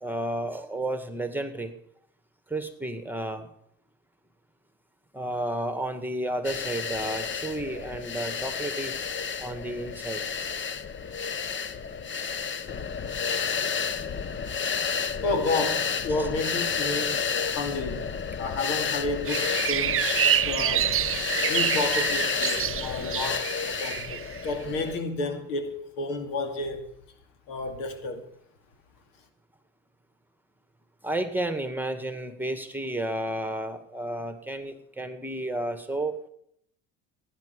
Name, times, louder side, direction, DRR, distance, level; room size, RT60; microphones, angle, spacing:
voice 1, 0.0-1.8 2.5-3.5 5.1-8.9 9.4-10.2 16.1-16.3 31.0-36.2, right 1 dB, 5° right, 2.0 m, -32 dB
sound 1, 6.4-25.0, left 6 dB, 30° left, 1.0 m, -31 dB
voice 2, 15.2-18.1 18.4-20.1 20.4-21.0 21.5-26.9 27.5-28.2, left 3 dB, 75° left, 2.4 m, -31 dB
sound 2, 19.3-24.5, right 11 dB, 35° right, 0.7 m, -27 dB
17.0 x 10.0 x 5.3 m
hypercardioid pair, 65°, 38 cm